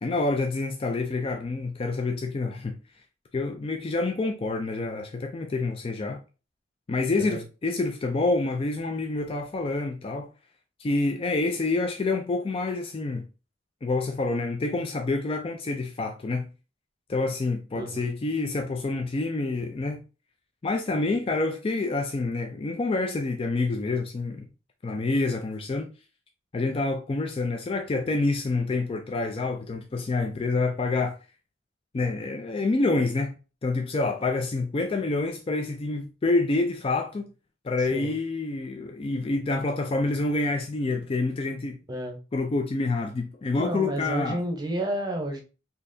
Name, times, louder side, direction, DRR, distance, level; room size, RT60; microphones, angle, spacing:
voice 1, 0.0-2.8 3.3-6.2 6.9-10.3 10.8-13.3 13.8-16.5 17.1-20.0 20.6-24.5 24.8-25.9 26.5-31.2 31.9-33.4 33.6-37.3 37.6-41.8 42.3-44.4, left 3 dB, 30° left, 0.4 m, -27 dB
voice 2, 17.7-18.1 37.8-38.2 41.9-42.2 43.6-45.4, right 1 dB, 20° right, 0.8 m, -31 dB
4.0 x 2.8 x 2.6 m
head